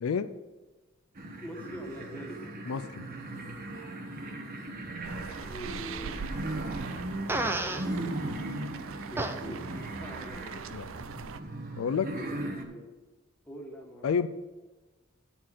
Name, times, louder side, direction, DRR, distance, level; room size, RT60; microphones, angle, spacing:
voice 1, 0.0-0.3 2.7-3.1 10.7-10.9 11.8-12.1 14.0-14.3, left 6 dB, 80° left, 12 dB, 0.4 m, -29 dB
sound 1, 1.1-12.6, right 1 dB, 45° right, 1.1 m, -38 dB
voice 2, 1.4-2.4 5.4-6.2 9.1-10.7 12.1-13.0 13.4-14.1, right 1 dB, 10° left, 0 dB, 1.3 m, -44 dB
sound 2, 5.0-11.4, right 6 dB, 70° right, 0.5 m, -42 dB
Fart, 7.3-7.9 9.2-9.3, right 2 dB, 10° right, 0.5 m, -29 dB
9.1 x 4.4 x 7.3 m, 1.2 s
head